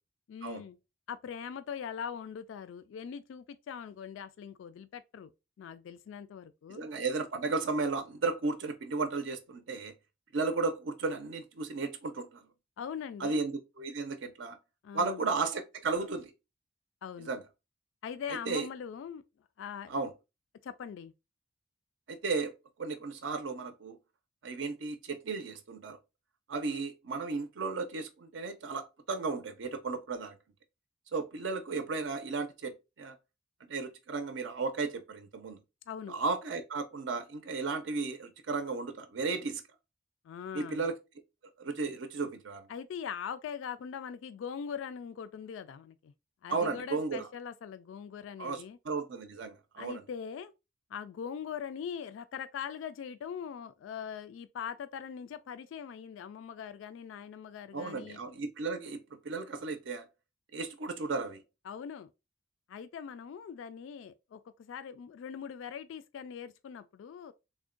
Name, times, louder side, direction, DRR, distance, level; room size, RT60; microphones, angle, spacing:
voice 1, 0.3-0.8 1.1-5.3 5.6-6.8 12.8-13.4 14.8-15.2 17.0-17.3 18.0-19.2 19.6-20.0 20.6-21.1 35.9-36.2 40.2-40.8 42.7-46.1 46.4-48.8 49.8-50.5 50.9-58.2 61.7-62.1 62.7-67.3, left 7 dB, 80° left, 0.3 m, -41 dB
voice 2, 6.7-9.9 10.3-12.4 13.2-14.6 14.9-16.3 17.2-17.4 18.5-18.7 19.9-20.1 22.1-22.5 22.8-24.0 24.4-26.0 26.5-30.4 31.1-33.2 33.7-35.6 36.1-39.6 40.5-41.0 41.6-42.7 46.5-47.3 48.4-50.0 57.7-60.1 60.5-61.4, right 4 dB, 70° right, 0.5 m, -34 dB
3.5 x 2.1 x 3.7 m
head